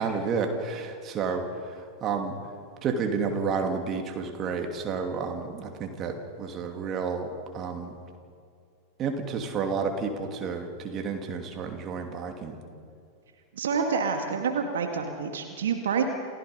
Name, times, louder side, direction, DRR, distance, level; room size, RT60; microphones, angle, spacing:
voice 1, 0.0-2.4 2.8-7.3 7.5-7.9 9.0-12.6, right 5 dB, 30° right, 4 dB, 2.7 m, -30 dB
voice 2, 13.5-16.0, right 6 dB, 65° right, 4 dB, 1.9 m, -27 dB
29.0 x 16.0 x 5.6 m, 2.3 s
figure-of-eight pair, 90°, 0 cm